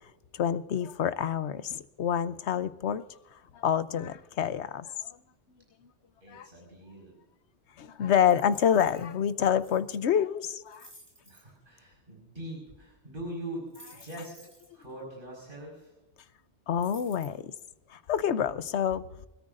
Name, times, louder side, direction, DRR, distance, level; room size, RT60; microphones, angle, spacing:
voice 1, 0.3-3.0 3.3-5.2 6.3-6.5 7.8-10.9 16.7-17.5 17.9-19.0, left 8 dB, 80° left, 14 dB, 1.0 m, -27 dB
voice 2, 6.2-7.1 11.2-14.3 14.7-15.9, right 1 dB, 50° right, -2 dB, 5.2 m, -42 dB
sound 1, 8.1-10.0 10.5-11.4 13.7-14.8 16.8-17.2, equal, 20° right, 4.5 m, -54 dB
25.0 x 13.5 x 2.5 m, 0.98 s
omnidirectional pair, 1.2 m